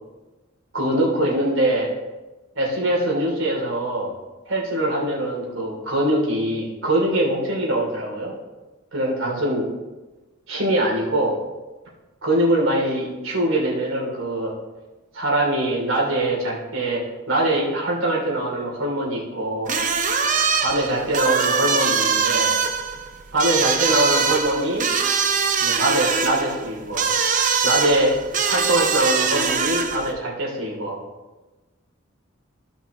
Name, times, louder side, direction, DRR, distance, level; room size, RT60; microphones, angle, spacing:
voice 1, 0.7-1.9 2.5-4.1 4.5-8.3 8.9-9.7 10.5-11.4 12.2-14.6 15.1-19.8 20.6-22.6 23.3-24.9 25.6-27.1 27.6-28.2 28.4-31.0, right 1 dB, 80° right, -3 dB, 3.0 m, -23 dB
sound 1, 19.7-30.1, right 5 dB, 40° right, 0.7 m, -22 dB
15.5 x 5.9 x 3.1 m, 1.1 s
head